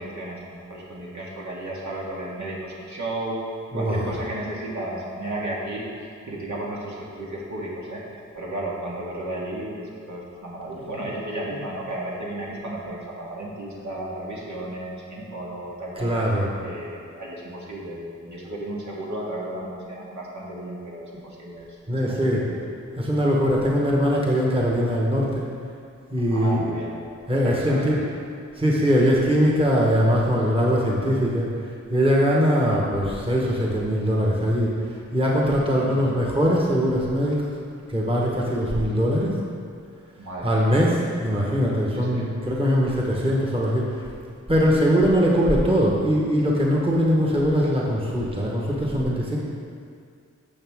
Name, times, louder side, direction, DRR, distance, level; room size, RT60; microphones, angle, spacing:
voice 1, 0.0-3.4 3.7-5.8 6.2-22.5 26.3-27.0 27.4-28.1 35.7-36.1 40.2-40.7 41.9-42.3, right 1 dB, 70° right, -5 dB, 2.0 m, -34 dB
voice 2, 3.7-4.1 15.9-16.5 21.9-22.5 23.0-25.4 26.1-26.7 27.3-28.0 28.6-31.5 31.9-37.5 37.9-39.4 40.4-44.0 44.5-49.4, equal, 20° right, -4 dB, 1.4 m, -21 dB
12.5 x 7.3 x 3.7 m, 2.3 s
wide cardioid pair, 130°, 30 cm